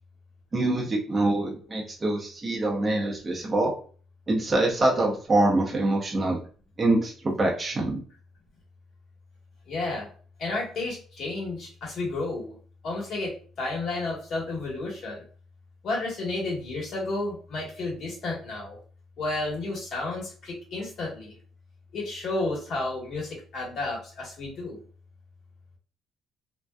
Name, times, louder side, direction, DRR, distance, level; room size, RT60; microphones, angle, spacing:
voice 1, 0.5-3.7 4.3-6.4 6.8-8.0, right 2 dB, 30° right, -2 dB, 0.7 m, -25 dB
voice 2, 9.7-10.1 10.4-12.5 12.8-15.2 15.8-18.8 19.2-21.3 21.9-24.8, left 2 dB, 60° left, -3 dB, 1.3 m, -32 dB
2.6 x 2.2 x 2.2 m, 0.41 s
cardioid pair, 95°, 0 cm